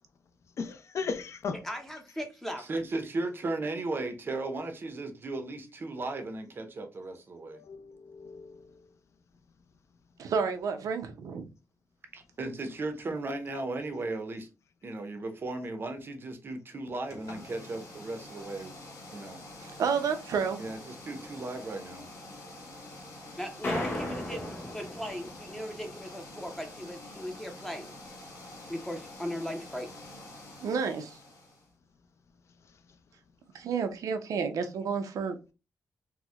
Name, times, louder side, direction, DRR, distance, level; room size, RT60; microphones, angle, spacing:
voice 1, 0.6-1.6 7.5-8.6, left 5 dB, 55° left, 0.4 m, -36 dB
voice 2, 1.5-2.7 23.4-27.9 28.7-29.9, equal, 5° left, 0.5 m, -38 dB
voice 3, 2.6-7.6 12.1-14.5 14.8-18.7 19.1-19.4 20.6-22.1, right 2 dB, 40° right, 0.5 m, -36 dB
voice 4, 10.2-11.5 19.6-20.6 30.6-31.2 33.5-35.4, right 6 dB, 85° right, 0.5 m, -30 dB
sound 1, 17.0-31.7, left 2 dB, 90° left, 1.2 m, -47 dB
sound 2, 23.6-25.6, left 1 dB, 35° left, 0.9 m, -35 dB
4.2 x 2.1 x 2.3 m
wide cardioid pair, 130°, 6 cm